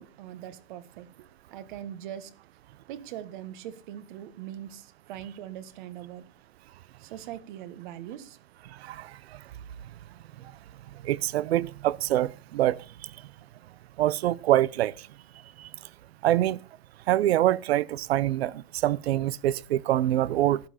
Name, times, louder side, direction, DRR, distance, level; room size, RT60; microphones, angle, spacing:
voice 1, 0.0-2.3 2.9-6.3 7.0-8.4 9.3-9.4, right 11 dB, 50° right, 1.3 m, -41 dB
voice 2, 11.0-12.8 14.0-14.9 16.2-16.6 17.1-20.6, right 13 dB, 85° right, 0.7 m, -25 dB
12.0 x 10.5 x 4.2 m
supercardioid pair, 160°, 30 cm